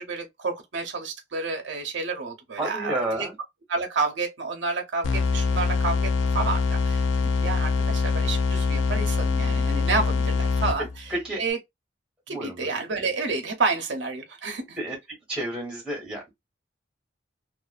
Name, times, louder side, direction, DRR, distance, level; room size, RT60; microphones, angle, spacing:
voice 1, 0.0-3.3 3.7-6.1 6.3-7.0 7.4-11.0 11.4-11.6 12.3-14.8, right 4 dB, 70° right, 0.7 m, -29 dB
voice 2, 2.6-3.3 11.1-11.4 12.3-12.7 14.8-15.0 15.3-16.3, right 1 dB, 5° right, 1.2 m, -30 dB
sound 1, 5.0-11.1, left 4 dB, 85° left, 0.4 m, -24 dB
2.4 x 2.4 x 2.3 m
head